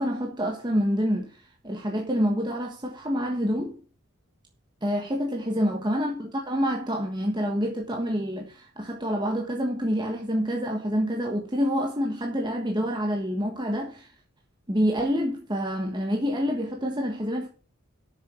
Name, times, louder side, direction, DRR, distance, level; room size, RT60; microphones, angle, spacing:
voice 1, 0.0-3.8 4.8-14.1 14.7-17.5, equal, 20° right, 1.4 m, -27 dB
8.2 x 6.9 x 8.1 m
head